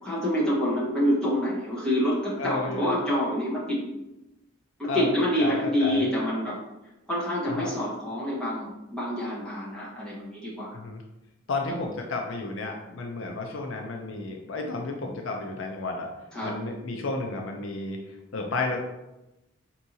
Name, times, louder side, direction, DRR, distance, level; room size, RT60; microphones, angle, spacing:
voice 1, 0.0-3.8 4.8-6.6 7.1-10.8 16.3-16.6, equal, 5° left, -9 dB, 1.2 m, -27 dB
voice 2, 2.4-3.1 4.9-5.1 5.4-6.0 7.5-7.7 10.7-11.0 11.5-16.1 16.4-18.0 18.3-18.8, left 3 dB, 70° left, 2 dB, 0.5 m, -32 dB
4.5 x 2.9 x 2.6 m, 0.96 s
head